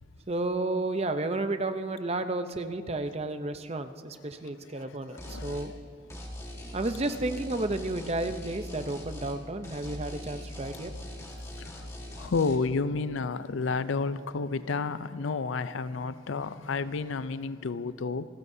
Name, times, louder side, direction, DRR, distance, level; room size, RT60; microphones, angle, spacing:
voice 1, 0.3-5.7 6.7-10.9, right 2 dB, 30° right, 9 dB, 0.7 m, -32 dB
voice 2, 4.7-5.8 10.9-11.0 11.6-18.3, left 4 dB, 85° left, 14 dB, 0.5 m, -31 dB
sound 1, 5.2-5.7 6.1-9.4 9.6-12.6, left 1 dB, 15° left, 1.6 m, -41 dB
28.0 x 15.0 x 2.7 m, 2.2 s
head